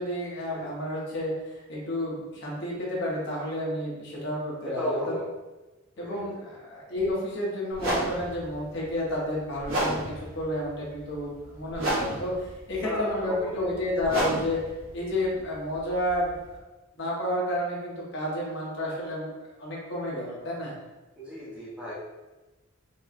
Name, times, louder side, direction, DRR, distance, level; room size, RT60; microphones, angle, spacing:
voice 1, 0.0-5.0 6.0-14.6 14.9-16.6 17.0-19.3 19.6-20.7, left 1 dB, 55° left, -5 dB, 0.9 m, -31 dB
voice 2, 4.7-5.3 5.9-6.2 12.8-13.8 21.2-21.9, equal, 5° right, -8 dB, 0.7 m, -34 dB
sound 1, 7.0-7.1 7.7-16.6, right 1 dB, 70° right, 1.0 m, -33 dB
4.2 x 2.2 x 2.5 m, 1.1 s
head